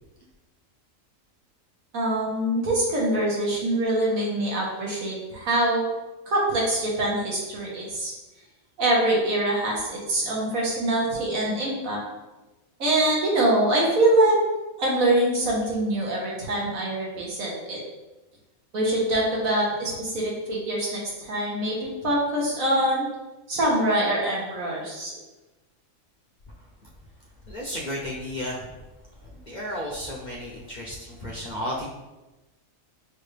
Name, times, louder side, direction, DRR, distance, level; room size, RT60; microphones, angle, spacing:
voice 1, 1.9-5.8 6.3-8.1 8.8-12.0 12.8-14.3 14.8-17.8 18.7-23.1 23.5-25.1, right 1 dB, 85° right, -4 dB, 1.7 m, -24 dB
voice 2, 27.5-28.7 29.2-31.9, left 1 dB, 45° left, -4 dB, 0.6 m, -33 dB
6.1 x 2.6 x 3.3 m, 1.1 s
omnidirectional pair, 1.4 m